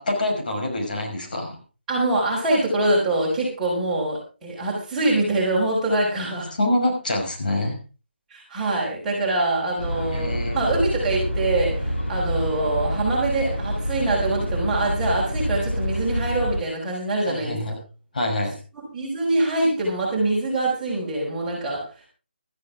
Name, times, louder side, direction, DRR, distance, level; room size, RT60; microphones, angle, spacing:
voice 1, 0.0-1.6 6.6-7.8 10.1-10.7 17.3-17.7 18.1-18.6, left 1 dB, 50° left, 1 dB, 5.6 m, -25 dB
voice 2, 1.9-6.5 8.3-17.6 18.9-21.8, right 2 dB, 5° right, -6 dB, 5.3 m, -24 dB
sound 1, 9.8-16.6, equal, 80° left, 7.9 m, -27 dB
17.0 x 14.0 x 3.7 m, 0.34 s
figure-of-eight pair, 150°, 6 cm